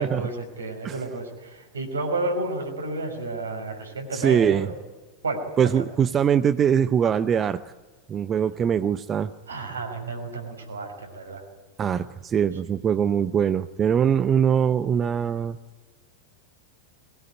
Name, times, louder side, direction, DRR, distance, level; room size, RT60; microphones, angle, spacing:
voice 1, 0.0-4.7 5.2-5.8 9.5-11.4, right 2 dB, 70° right, 3 dB, 5.6 m, -31 dB
voice 2, 4.1-4.7 5.6-7.6 8.1-9.3 11.8-15.6, right 8 dB, 25° right, 14 dB, 0.7 m, -22 dB
22.0 x 19.5 x 9.7 m, 1.3 s
figure-of-eight pair, 90°, 0 cm